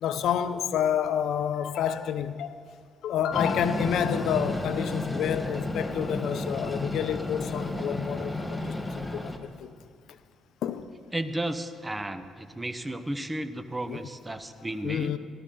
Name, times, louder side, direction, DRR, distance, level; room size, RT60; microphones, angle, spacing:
voice 1, 0.0-2.6 3.0-9.7 10.6-10.9 13.9-14.0 14.8-15.2, left 9 dB, 75° left, 0.6 m, -29 dB
Train, 3.3-9.4, left 2 dB, 10° left, 1.1 m, -32 dB
voice 2, 11.1-15.1, right 1 dB, 15° right, 0.8 m, -33 dB
17.5 x 12.5 x 3.8 m
cardioid pair, 90°, 0 cm